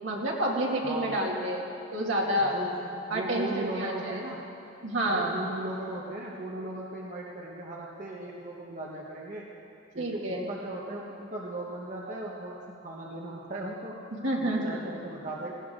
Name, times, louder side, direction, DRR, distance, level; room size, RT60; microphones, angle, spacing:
voice 1, 0.0-2.6 3.1-4.2 4.8-5.4 10.0-10.5 14.2-14.8, right 1 dB, 70° right, -2 dB, 2.5 m, -29 dB
voice 2, 0.8-1.2 2.4-4.4 5.1-9.5 9.9-14.0 14.4-15.5, right 1 dB, 40° right, -3 dB, 1.3 m, -37 dB
18.0 x 17.5 x 3.8 m, 2.8 s
head